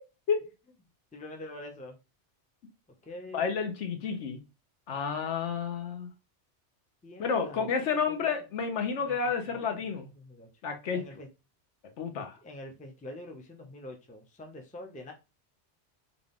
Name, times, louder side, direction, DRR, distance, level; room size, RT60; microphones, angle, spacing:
voice 1, 1.1-2.0 3.0-3.5 7.0-8.3 9.0-9.2 9.5-10.5 10.9-11.3 12.2-15.1, left 1 dB, 10° left, 0.4 m, -46 dB
voice 2, 3.3-4.4 4.9-6.1 7.2-10.1 10.6-11.0 12.0-12.3, left 6 dB, 80° left, 1.1 m, -30 dB
4.0 x 2.3 x 3.5 m
omnidirectional pair, 1.2 m